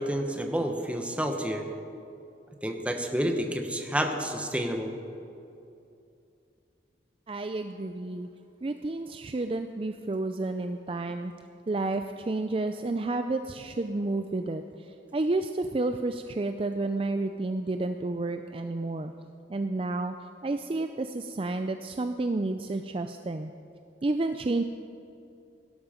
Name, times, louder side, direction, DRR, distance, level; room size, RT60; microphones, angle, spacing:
voice 1, 0.0-1.6 2.6-4.9, equal, 5° right, 4 dB, 1.2 m, -29 dB
voice 2, 7.3-8.3 8.6-11.3 11.7-19.1 19.5-20.1 20.4-23.5 24.0-24.6, right 2 dB, 30° right, 8 dB, 0.4 m, -30 dB
17.5 x 12.0 x 5.1 m, 2.6 s
head